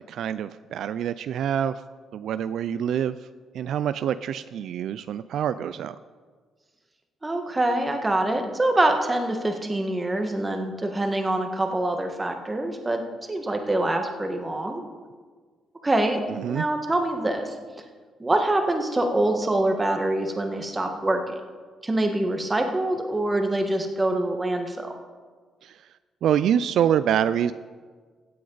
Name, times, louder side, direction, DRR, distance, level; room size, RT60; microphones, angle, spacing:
voice 1, 0.1-1.8 2.1-3.2 3.5-6.0 16.3-16.7 25.6-25.8 26.2-27.5, right 9 dB, 75° right, 14 dB, 0.3 m, -25 dB
voice 2, 7.2-13.0 13.3-14.8 15.8-17.5 18.2-21.3 21.8-24.9, right 1 dB, 20° right, 4 dB, 1.5 m, -25 dB
15.5 x 8.5 x 4.0 m, 1.5 s
cardioid pair, 90°, 0 cm